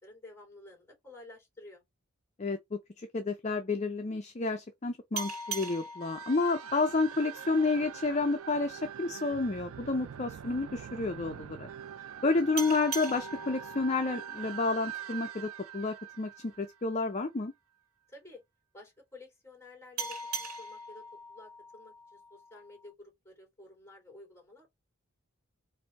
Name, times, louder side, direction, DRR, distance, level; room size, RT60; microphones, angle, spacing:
voice 1, 0.0-1.8 18.1-18.4 18.7-21.0 21.3-24.7, left 2 dB, 15° left, 2.9 m, -52 dB
voice 2, 2.4-11.7 12.2-16.3 16.6-17.5, left 3 dB, 30° left, 0.5 m, -30 dB
sound 1, 5.2-8.4 12.6-15.8 20.0-22.9, right 3 dB, 80° right, 1.4 m, -42 dB
sound 2, 6.0-17.2, right 10 dB, 65° right, 0.3 m, -44 dB
4.2 x 2.6 x 4.4 m
head